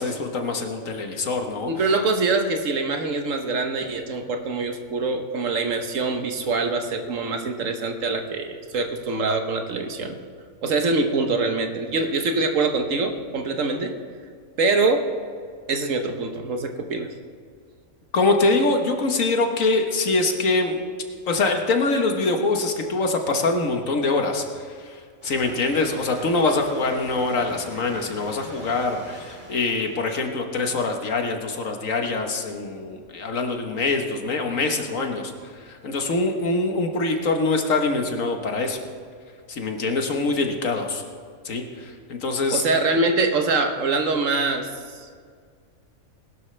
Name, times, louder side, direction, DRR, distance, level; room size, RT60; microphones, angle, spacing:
voice 1, 0.0-1.7 18.1-20.8 21.3-25.0 25.2-35.3 35.7-38.8 39.5-41.0 41.4-42.6, left 3 dB, 70° left, 4 dB, 1.6 m, -24 dB
voice 2, 1.7-10.2 10.6-13.9 14.6-15.1 15.7-17.1 42.5-45.0, right 3 dB, 65° right, 5 dB, 1.4 m, -24 dB
sound 1, 25.2-30.2, right 1 dB, 45° right, 2.6 m, -44 dB
20.0 x 12.0 x 3.3 m, 2.1 s
omnidirectional pair, 1.4 m